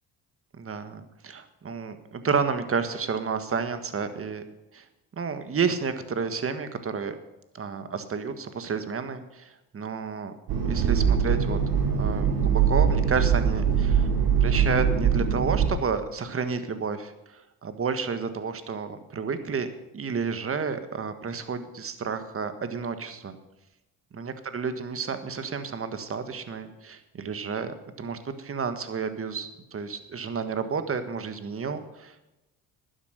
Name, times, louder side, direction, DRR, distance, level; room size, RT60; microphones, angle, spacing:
voice 1, 0.5-4.4 4.7-4.8 5.2-7.2 7.5-10.3 10.6-11.6 12.0-14.1 14.4-19.7 19.9-23.4 24.1-32.2, right 5 dB, 35° right, 10 dB, 1.6 m, -31 dB
sound 1, 10.5-15.7, right 7 dB, 80° right, 2.7 m, -22 dB
12.0 x 9.9 x 6.5 m, 0.96 s
cardioid pair, 90°, 37 cm